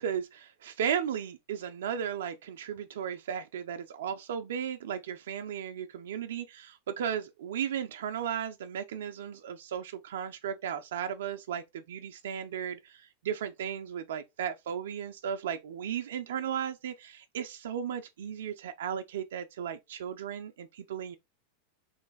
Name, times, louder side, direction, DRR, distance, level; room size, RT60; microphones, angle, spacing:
voice 1, 0.0-21.2, right 8 dB, 80° right, 0.4 m, -35 dB
3.2 x 3.1 x 3.8 m
hypercardioid pair, 110°, 0 cm